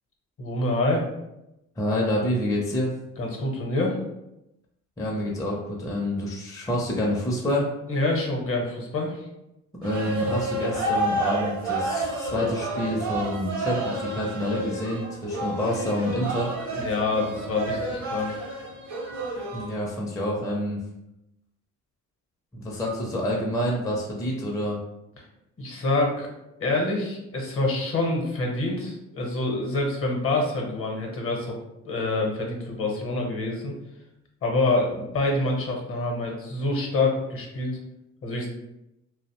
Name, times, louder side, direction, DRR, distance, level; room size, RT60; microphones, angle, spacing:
voice 1, 0.4-1.0 3.2-4.0 7.9-9.2 10.2-10.3 16.7-18.4 25.6-26.3 26.6-31.6 31.8-33.8 34.4-37.8 38.2-38.5, left 2 dB, 50° left, 1 dB, 0.8 m, -26 dB
voice 2, 1.8-2.9 5.0-7.7 9.8-16.5 19.5-20.8 22.5-24.8, left 1 dB, 10° left, -2 dB, 0.5 m, -27 dB
sound 1, 9.8-19.7, right 2 dB, 65° right, 0.7 m, -30 dB
2.5 x 2.0 x 2.9 m, 0.89 s
cardioid pair, 90°, 30 cm